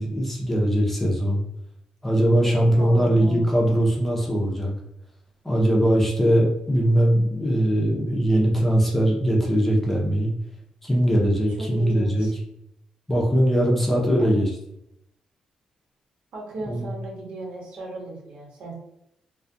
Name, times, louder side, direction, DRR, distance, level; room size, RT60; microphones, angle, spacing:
voice 1, 0.0-1.4 2.0-4.7 5.4-10.3 10.8-12.3 13.1-14.5 16.7-16.8, equal, 10° left, -2 dB, 0.5 m, -21 dB
voice 2, 2.4-3.4 11.6-12.3 14.2-14.3 16.3-18.7, right 3 dB, 80° right, -4 dB, 0.9 m, -36 dB
2.3 x 2.1 x 2.5 m, 0.77 s
cardioid pair, 145°, 2 cm